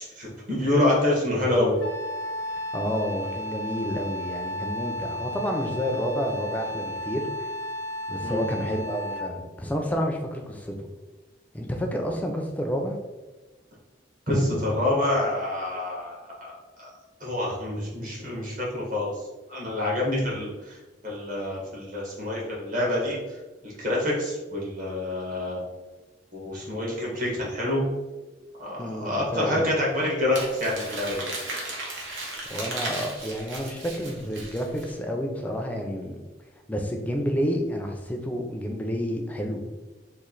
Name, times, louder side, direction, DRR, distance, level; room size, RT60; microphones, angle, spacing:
voice 1, 0.0-1.7 8.2-8.4 14.3-16.5 16.8-16.9 17.2-20.8 21.0-25.6 26.3-27.8 28.6-31.3, left 1 dB, 45° right, -4 dB, 1.1 m, -27 dB
Wind instrument woodwind instrument, 1.8-9.4, left 1 dB, 80° left, 0.5 m, -34 dB
voice 2, 2.7-7.5 8.1-10.7 11.5-13.0 28.8-29.6 32.5-36.2 36.7-39.8, equal, 10° left, 2 dB, 0.4 m, -30 dB
Crumpling crinkling, 30.3-34.9, right 2 dB, 80° right, 1.0 m, -35 dB
3.1 x 2.4 x 3.8 m, 1.2 s
head